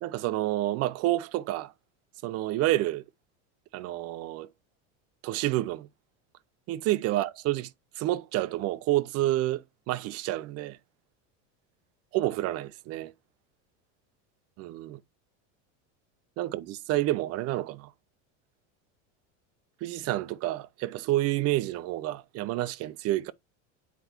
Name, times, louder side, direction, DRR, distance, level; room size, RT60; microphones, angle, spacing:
voice 1, 0.0-1.7 2.2-3.0 3.7-4.5 5.2-5.9 6.7-7.7 8.0-10.8 12.1-13.1 14.6-15.0 16.4-17.9 19.8-23.3, right 16 dB, 45° right, 0.5 m, -29 dB
8.1 x 4.6 x 2.9 m
supercardioid pair, 130°, 36 cm